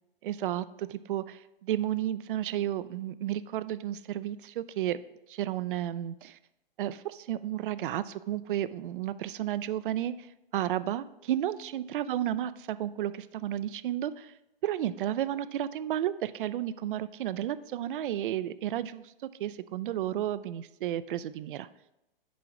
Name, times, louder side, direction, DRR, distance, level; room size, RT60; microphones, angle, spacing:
voice 1, 0.2-5.0 5.3-6.4 6.8-10.3 10.5-14.3 14.6-19.1 19.4-21.7, right 12 dB, 60° right, 16 dB, 0.5 m, -32 dB
10.0 x 4.8 x 3.0 m, 0.92 s
hypercardioid pair, 140°, 29 cm